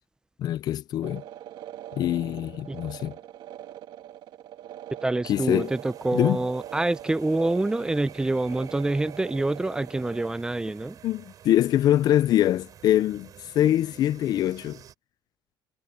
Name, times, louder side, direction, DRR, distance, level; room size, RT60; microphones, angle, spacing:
voice 1, 0.4-1.2 1.9-3.2 5.2-5.7 6.1-6.4 11.0-14.8, left 12 dB, 55° left, 0.4 m, -24 dB
sound 1, 1.0-10.4, right 12 dB, 75° right, 2.8 m, -42 dB
voice 2, 5.0-11.0, right 2 dB, 10° right, 0.6 m, -26 dB
sound 2, 5.3-14.9, right 9 dB, 45° right, 7.2 m, -50 dB
cardioid pair, 165°, 8 cm